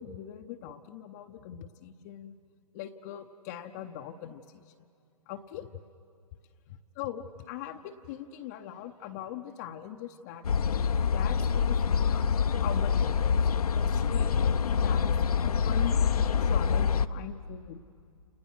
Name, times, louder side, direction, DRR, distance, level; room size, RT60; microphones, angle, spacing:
voice 1, 0.0-2.3 2.7-4.6 5.3-5.7 6.7-10.8 11.1-12.3 12.6-13.5 13.8-15.1 15.4-16.0 16.4-17.8, left 11 dB, 30° left, 6 dB, 0.7 m, -41 dB
sound 1, 10.4-17.1, left 6 dB, 75° left, 0.8 m, -26 dB
29.5 x 29.0 x 6.2 m, 2.4 s
hypercardioid pair, 140°, 19 cm